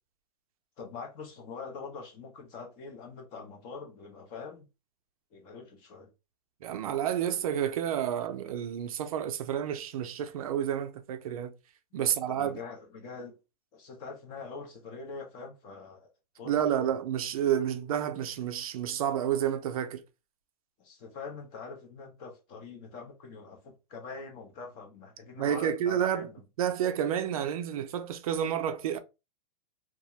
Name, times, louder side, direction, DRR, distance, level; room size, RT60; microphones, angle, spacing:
voice 1, 0.8-4.7 5.3-6.1 12.0-13.3 13.7-16.1 16.4-16.9 20.8-26.5, left 4 dB, 25° left, 0.5 m, -44 dB
voice 2, 6.6-11.5 11.9-12.6 16.4-20.0 25.4-26.3 26.6-29.0, right 9 dB, 65° right, 0.4 m, -30 dB
2.3 x 2.0 x 2.8 m
supercardioid pair, 160°, 20 cm